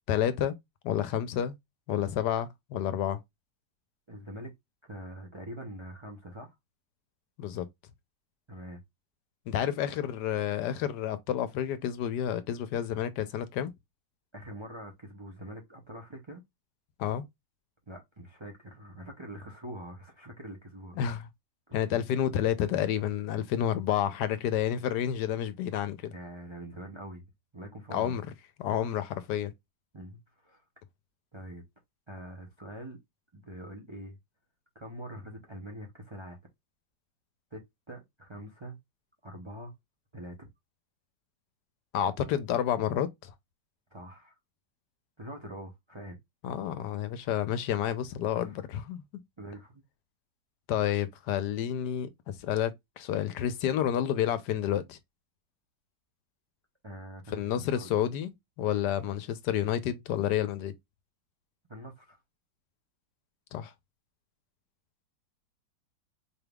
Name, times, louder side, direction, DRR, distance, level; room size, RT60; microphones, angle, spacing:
voice 1, 0.1-0.6 0.8-1.6 1.9-3.2 7.4-7.6 9.5-13.7 17.0-17.2 20.9-21.3 21.7-26.1 27.9-28.2 28.6-29.5 41.9-43.3 46.4-49.0 50.7-55.0 57.3-58.3 58.6-60.7 63.5-63.7, left 10 dB, 75° left, 1.2 m, -30 dB
voice 2, 4.1-4.5 4.9-6.5 8.5-8.8 14.3-16.4 17.9-21.0 26.1-27.2 27.5-28.1 29.9-30.6 31.3-31.6 32.1-33.0 33.3-34.2 34.7-36.4 37.5-37.6 37.9-38.8 39.2-39.7 40.1-40.5 43.9-44.4 45.2-46.2 48.3-48.6 49.4-49.8 56.8-57.9 61.7-62.2, right 1 dB, 40° right, 0.4 m, -44 dB
4.6 x 3.4 x 2.3 m
omnidirectional pair, 1.9 m